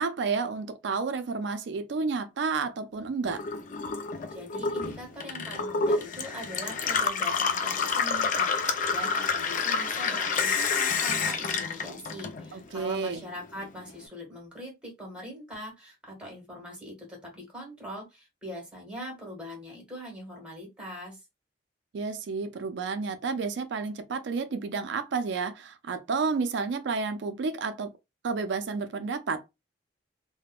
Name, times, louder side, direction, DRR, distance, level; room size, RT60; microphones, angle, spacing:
voice 1, 0.0-3.4 12.5-13.2 21.9-27.9 28.2-29.4, right 4 dB, 65° right, 0.4 m, -31 dB
Gurgling / Water tap faucet / Sink (filling or washing), 3.2-12.8 13.1-14.0, left 5 dB, 45° left, 0.4 m, -29 dB
voice 2, 4.3-21.2, equal, 5° right, 1.4 m, -42 dB
3.4 x 2.1 x 2.3 m
head